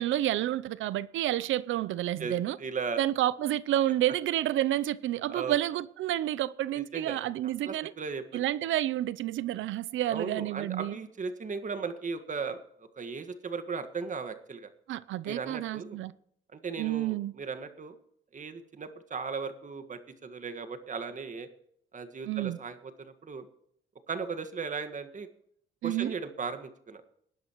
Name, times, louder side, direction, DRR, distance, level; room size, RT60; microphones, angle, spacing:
voice 1, 0.0-2.6 3.0-7.9 8.3-11.0 14.9-16.1 16.8-17.3 22.2-22.6 25.8-26.1, right 13 dB, 80° right, 0.7 m, -30 dB
voice 2, 2.2-3.0 5.3-5.6 6.7-7.2 7.6-8.4 10.1-14.7 15.3-16.0 16.5-18.0 18.3-21.5 21.9-23.5 24.1-25.3 25.8-27.0, right 5 dB, 40° right, 1.7 m, -37 dB
19.5 x 10.5 x 3.1 m
cardioid pair, 90°, 20 cm